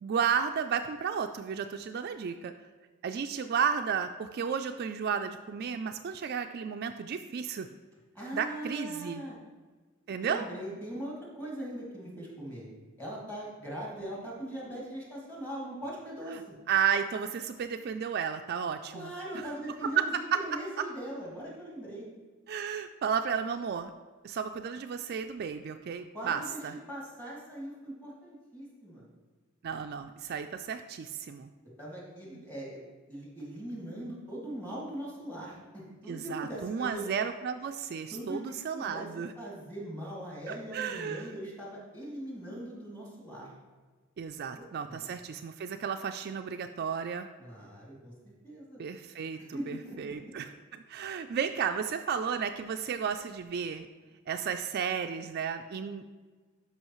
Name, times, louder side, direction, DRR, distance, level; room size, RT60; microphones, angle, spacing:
voice 1, 0.0-2.5 3.0-7.7 8.3-9.2 10.1-10.5 16.7-19.1 19.4-19.5 20.0-20.1 20.3-20.4 22.5-23.9 24.2-26.8 29.6-31.5 36.1-39.3 40.5-41.3 44.2-47.3 48.8-50.5 50.9-53.9 54.3-56.0, right 7 dB, 50° right, 7 dB, 0.3 m, -33 dB
voice 2, 8.1-9.4 10.2-12.7 13.0-16.5 18.9-22.1 26.1-29.1 31.8-32.8 33.1-37.1 38.1-39.1 39.4-43.5 44.6-45.1 47.4-48.8 49.4-50.2, right 1 dB, 10° left, -6 dB, 2.4 m, -41 dB
12.0 x 5.5 x 3.0 m, 1.4 s
head